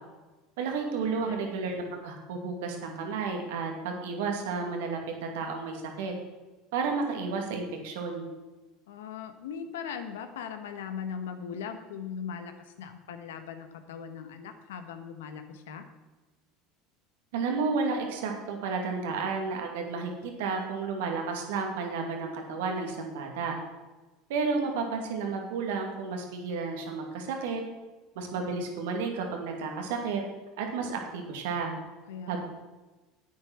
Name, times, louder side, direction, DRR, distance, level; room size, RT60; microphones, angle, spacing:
voice 1, 0.6-6.1 6.7-8.2 17.3-23.5 24.3-27.6 28.2-30.2 30.6-31.7 32.3-32.4, right 4 dB, 75° right, 2 dB, 2.3 m, -32 dB
voice 2, 8.9-15.8 32.1-32.4, left 7 dB, 85° left, 8 dB, 1.2 m, -39 dB
9.5 x 8.8 x 5.9 m, 1.2 s
hypercardioid pair, 90°, 0 cm